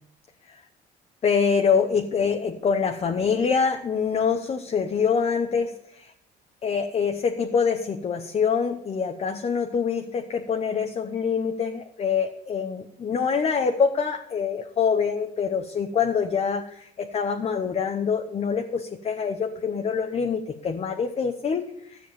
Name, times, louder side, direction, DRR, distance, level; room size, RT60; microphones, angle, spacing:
voice 1, 1.2-6.1 6.6-22.0, left 6 dB, 40° left, 4 dB, 1.0 m, -25 dB
13.0 x 7.2 x 7.0 m, 0.72 s
cardioid pair, 110°, 17 cm